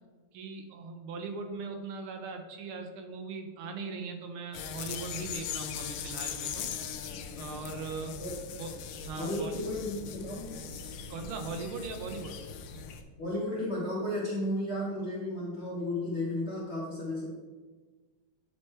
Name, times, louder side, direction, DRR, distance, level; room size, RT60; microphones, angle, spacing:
voice 1, 0.3-6.7 7.4-8.2 8.6-9.5 11.1-12.4, right 4 dB, 75° right, 5 dB, 1.5 m, -39 dB
sound 1, 4.5-13.0, left 7 dB, 75° left, 1.1 m, -40 dB
voice 2, 8.1-8.4 9.2-10.6 13.2-17.3, left 1 dB, 45° left, -5 dB, 0.9 m, -33 dB
8.5 x 3.1 x 4.3 m, 1.4 s
omnidirectional pair, 2.4 m